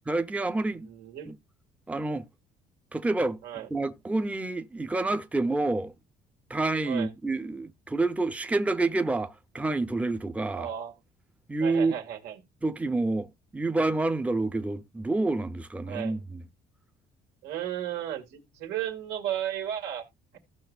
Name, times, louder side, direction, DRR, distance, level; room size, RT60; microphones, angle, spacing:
voice 1, 0.1-0.9 1.3-1.4 1.9-2.2 2.9-3.4 3.7-5.9 6.5-10.7 11.5-11.9 12.6-16.4, right 2 dB, 10° right, 0.6 m, -28 dB
voice 2, 0.8-1.3 3.4-3.7 6.9-7.1 10.5-10.9 11.6-12.4 15.9-16.2 17.4-20.1 20.3-20.4, right 10 dB, 90° right, 2.3 m, -34 dB
15.0 x 5.9 x 2.4 m
cardioid pair, 110°, 17 cm